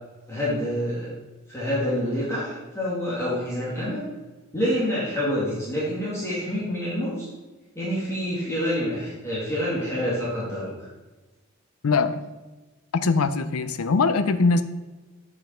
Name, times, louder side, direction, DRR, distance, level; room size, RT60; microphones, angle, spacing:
voice 1, 0.3-1.1 1.5-4.0 4.5-7.3 7.8-10.8, equal, 15° left, -9 dB, 2.1 m, -27 dB
voice 2, 11.8-12.2 12.9-14.6, left 4 dB, 85° left, 11 dB, 0.6 m, -22 dB
8.0 x 5.2 x 4.4 m, 1.2 s
head